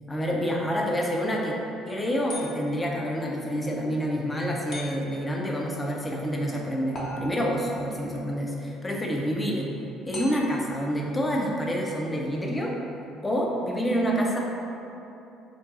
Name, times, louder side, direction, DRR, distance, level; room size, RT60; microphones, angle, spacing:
voice 1, 0.1-1.6 1.9-9.7 10.0-12.8 13.2-14.4, equal, 20° left, -2 dB, 0.7 m, -27 dB
sound 1, 2.3-2.9 4.7-5.3 6.9-7.7 10.1-10.7, left 1 dB, 45° left, 1.1 m, -39 dB
5.3 x 2.2 x 4.1 m, 2.8 s
figure-of-eight pair, 55°, 0 cm